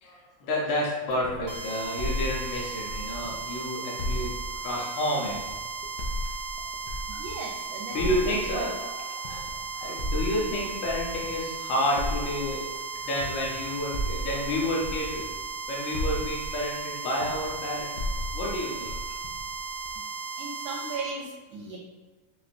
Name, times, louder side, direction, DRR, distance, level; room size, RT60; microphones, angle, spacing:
voice 1, 0.0-4.3 4.6-5.4 7.9-12.6 12.9-15.3 15.7-18.0 18.3-19.0, left 1 dB, 70° left, -3 dB, 1.4 m, -30 dB
sound 1, 1.1-3.5 4.0-7.5 8.0-11.5 12.0-15.6 15.9-20.0, equal, 85° left, 1.5 m, -35 dB
sound 2, 1.5-21.0, right 5 dB, 55° right, 0.6 m, -36 dB
voice 2, 7.2-8.0 8.3-8.7 20.4-21.8, right 3 dB, 75° right, -2 dB, 1.0 m, -36 dB
4.8 x 2.5 x 2.5 m, 1.3 s
omnidirectional pair, 2.3 m